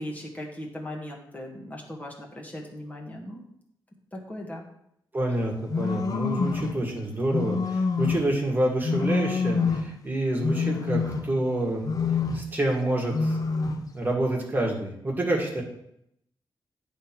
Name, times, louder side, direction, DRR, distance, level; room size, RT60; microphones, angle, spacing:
voice 1, 0.0-3.4 4.1-4.7, left 1 dB, 20° left, -1 dB, 1.3 m, -38 dB
voice 2, 5.1-11.8 12.3-13.4 13.9-15.6, right 1 dB, 25° right, 0 dB, 1.7 m, -27 dB
sound 1, 5.7-6.8 7.3-8.4 8.8-9.9 10.4-11.5 11.8-12.6 13.1-13.9, left 4 dB, 50° left, 0.6 m, -26 dB
9.0 x 3.5 x 5.9 m, 0.76 s
wide cardioid pair, 110°, 8 cm